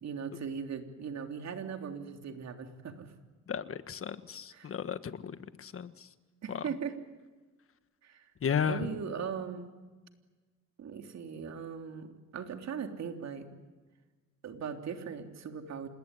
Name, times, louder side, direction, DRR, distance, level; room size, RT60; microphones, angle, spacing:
voice 1, 0.0-3.1 4.5-4.7 6.4-7.0 8.0-8.3 8.6-9.7 10.8-13.5 14.4-15.9, right 6 dB, 60° right, 5 dB, 3.4 m, -39 dB
voice 2, 3.5-6.1 6.5-6.6 8.4-8.9, left 7 dB, 45° left, 12 dB, 1.5 m, -34 dB
27.5 x 20.5 x 9.9 m, 1.3 s
cardioid pair, 90°, 30 cm